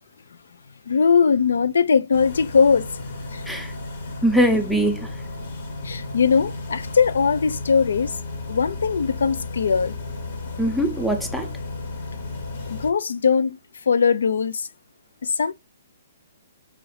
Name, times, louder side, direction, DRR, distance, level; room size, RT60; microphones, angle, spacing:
voice 1, 0.9-2.9 3.3-3.4 5.8-8.2 8.5-9.9 12.6-13.6 13.9-14.7 15.2-15.5, left 6 dB, 85° left, 0.3 m, -20 dB
sound 1, 2.1-12.9, left 3 dB, 55° left, 1.1 m, -33 dB
voice 2, 4.2-5.1 10.6-11.5, right 1 dB, ahead, 0.6 m, -21 dB
4.9 x 2.6 x 3.2 m
hypercardioid pair, 160°, 0 cm